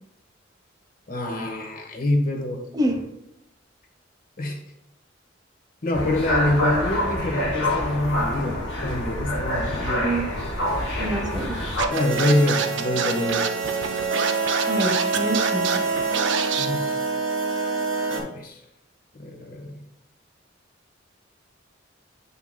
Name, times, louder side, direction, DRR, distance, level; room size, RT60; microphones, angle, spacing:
voice 1, 1.1-2.6 4.4-4.6 5.8-10.1 11.9-13.5 16.5-17.0 18.1-18.6 19.1-19.7, left 1 dB, 45° left, 2 dB, 1.3 m, -26 dB
sound 1, 5.9-11.9, left 1 dB, 75° left, 2.1 m, -26 dB
voice 2, 11.0-11.6 14.7-15.8, right 1 dB, 20° right, 3 dB, 0.9 m, -26 dB
Scratching (performance technique), 11.8-16.7, right 7 dB, 65° right, 0.6 m, -26 dB
sound 2, 11.9-18.2, right 4 dB, 90° right, 1.9 m, -26 dB
8.7 x 5.6 x 2.3 m, 0.81 s
head